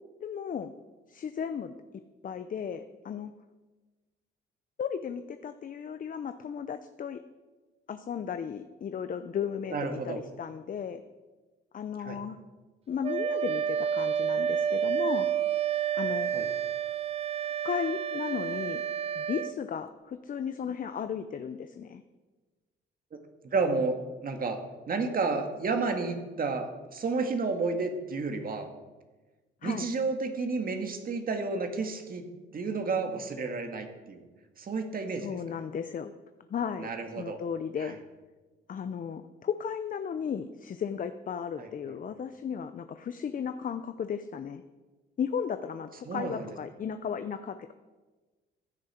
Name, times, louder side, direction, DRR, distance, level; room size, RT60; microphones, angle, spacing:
voice 1, 0.2-0.7 1.1-1.7 2.2-3.3 4.8-7.2 7.9-11.0 11.7-12.4 12.9-15.3 15.9-16.3 17.6-18.8 19.2-22.0 29.6-29.9 35.2-36.1 36.5-36.9 37.2-38.0 38.7-44.6 45.2-47.7, left 7 dB, 45° left, 10 dB, 0.6 m, -35 dB
voice 2, 9.7-10.2 12.0-12.2 16.3-16.5 23.4-24.0 24.2-28.7 29.6-32.2 32.5-34.2 34.6-35.3 36.8-37.4 37.8-37.9 41.6-41.7 46.1-46.4, right 4 dB, 45° right, 5 dB, 1.9 m, -31 dB
Wind instrument woodwind instrument, 13.0-19.6, right 8 dB, 30° right, 0.4 m, -30 dB
15.0 x 9.8 x 4.4 m, 1.2 s
cardioid pair, 90°, 20 cm